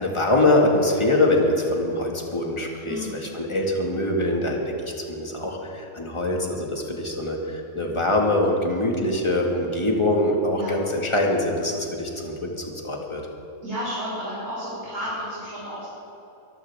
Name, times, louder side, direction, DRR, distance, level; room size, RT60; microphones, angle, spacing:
voice 1, 0.0-13.2, left 1 dB, 20° left, 0 dB, 1.8 m, -23 dB
voice 2, 2.8-3.3 10.5-10.7 13.6-15.9, equal, 55° right, -12 dB, 4.6 m, -32 dB
22.5 x 14.5 x 3.5 m, 2.9 s
omnidirectional pair, 1.6 m